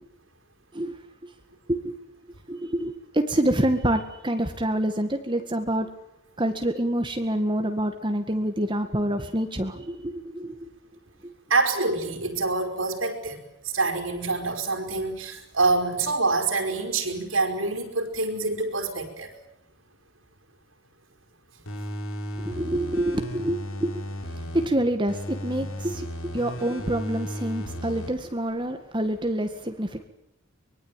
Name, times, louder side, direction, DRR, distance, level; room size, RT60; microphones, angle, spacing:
voice 1, 2.5-5.9 6.4-10.7 11.2-11.3 22.4-30.0, right 1 dB, 20° right, 1.9 m, -27 dB
voice 2, 11.5-19.3 24.4-24.5, right 3 dB, 70° right, 4.9 m, -26 dB
sound 1, 21.7-24.7 25.1-28.1 28.5-28.6, equal, 80° left, 5.6 m, -35 dB
24.5 x 22.5 x 9.1 m
head